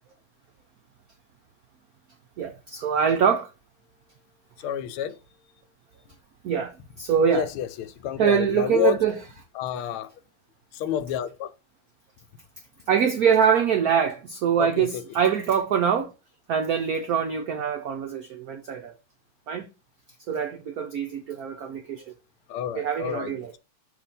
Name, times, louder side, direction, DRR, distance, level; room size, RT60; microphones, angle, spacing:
voice 1, 2.4-3.5 6.4-7.5 8.2-9.1 12.9-16.1 16.5-18.9 19.5-19.7 20.3-22.1 22.7-23.5, right 7 dB, 85° right, 0.8 m, -24 dB
voice 2, 4.6-5.2 7.3-9.0 9.5-10.1 10.7-11.5 14.6-15.0 22.5-23.6, left 10 dB, 85° left, 1.5 m, -29 dB
6.7 x 2.7 x 5.1 m
omnidirectional pair, 2.3 m